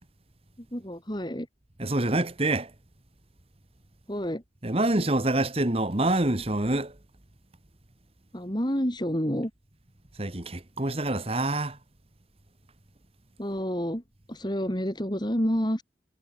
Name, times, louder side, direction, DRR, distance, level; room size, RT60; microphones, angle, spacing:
voice 1, 0.6-1.5 4.1-4.4 8.3-9.5 13.4-14.0 14.3-15.8, equal, 25° left, 4.1 m, -29 dB
voice 2, 1.8-2.7 4.6-6.9 10.2-11.8, right 2 dB, 30° right, 1.6 m, -26 dB
head